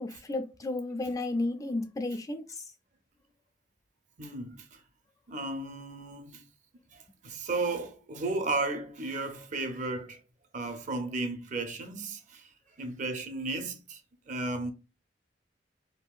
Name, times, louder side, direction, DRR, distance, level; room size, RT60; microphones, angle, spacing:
voice 1, 0.0-2.6, left 2 dB, 20° left, 0.3 m, -33 dB
voice 2, 4.2-4.8 5.3-6.4 6.9-10.2 10.5-12.5 12.8-14.0 14.3-14.7, right 2 dB, 45° right, 0.6 m, -34 dB
3.6 x 2.4 x 2.4 m
head